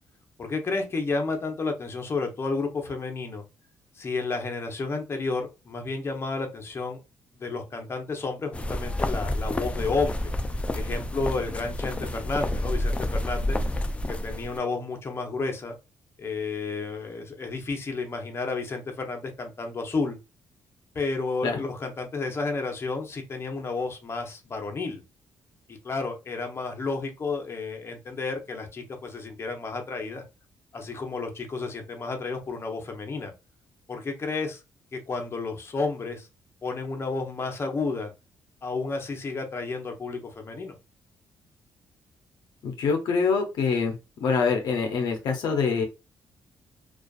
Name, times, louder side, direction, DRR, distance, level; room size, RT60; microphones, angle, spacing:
voice 1, 0.4-3.4 4.0-7.0 7.4-10.3 10.7-13.6 14.1-15.7 16.2-20.2 20.9-25.0 25.7-30.2 30.7-33.3 33.9-34.6 34.9-36.3 36.6-38.1 38.6-40.7, left 3 dB, 35° left, 4 dB, 0.7 m, -31 dB
sound 1, 8.5-14.6, left 1 dB, 15° left, 0.3 m, -29 dB
voice 2, 42.6-43.9 44.2-45.8, left 5 dB, 75° left, 4 dB, 0.5 m, -25 dB
2.4 x 2.3 x 2.3 m, 0.26 s
cardioid pair, 80°, 7 cm